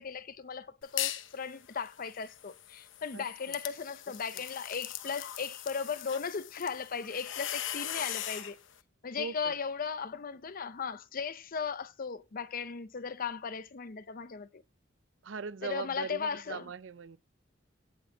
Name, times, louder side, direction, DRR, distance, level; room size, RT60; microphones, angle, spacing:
voice 1, 0.0-8.6 9.0-14.6 15.6-16.7, left 6 dB, 50° left, 0.6 m, -37 dB
sound 1, 0.8-1.3 1.7-8.5, left 12 dB, 85° left, 0.9 m, -39 dB
voice 2, 3.1-3.6 9.2-9.6 15.2-16.2 16.5-17.2, right 5 dB, 75° right, 0.5 m, -40 dB
17.5 x 6.2 x 2.8 m
head